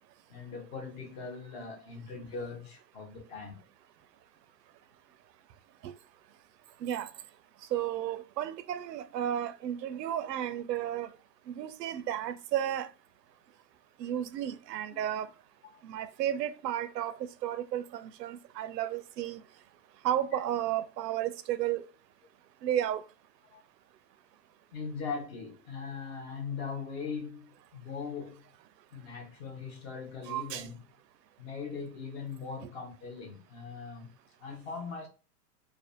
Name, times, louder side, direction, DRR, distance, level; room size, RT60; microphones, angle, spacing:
voice 1, 0.3-3.6 14.9-15.0 15.7-15.8 23.5-23.6 24.7-28.5 28.9-30.8 31.4-35.1, left 5 dB, 40° left, 0.9 m, -40 dB
voice 2, 7.7-11.1 11.5-12.9 14.0-15.3 15.8-17.1 17.4-19.4 20.0-21.9 22.6-23.0 30.3-30.6, right 11 dB, 90° right, 0.5 m, -33 dB
2.5 x 2.3 x 2.5 m
hypercardioid pair, 150°, 48 cm